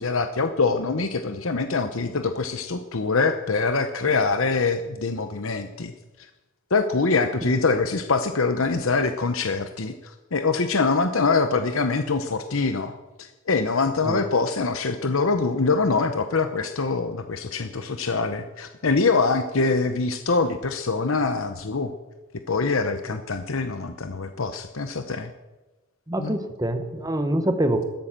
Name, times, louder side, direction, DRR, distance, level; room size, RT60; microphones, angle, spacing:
voice 1, 0.0-5.9 6.2-6.3 6.7-21.9 22.5-25.3 26.2-26.4, left 4 dB, 65° left, 8 dB, 0.9 m, -24 dB
voice 2, 26.1-27.8, right 1 dB, 15° right, 7 dB, 1.3 m, -25 dB
14.5 x 13.0 x 7.5 m, 1.1 s
head